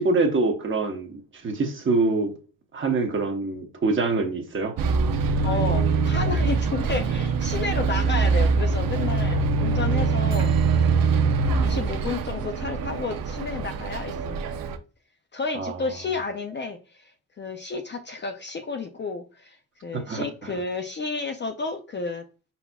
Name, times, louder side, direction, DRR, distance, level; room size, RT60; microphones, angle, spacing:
voice 1, 0.0-2.3 2.7-4.8 15.5-15.8 19.9-20.5, right 3 dB, 35° right, 0.9 m, -25 dB
Bus, 4.8-14.8, right 4 dB, 70° right, 0.6 m, -23 dB
voice 2, 5.4-10.5 11.2-14.4 15.3-17.1 17.4-19.6 19.8-22.2, left 4 dB, 30° left, 0.4 m, -31 dB
5.4 x 4.2 x 2.2 m
wide cardioid pair, 175°, 36 cm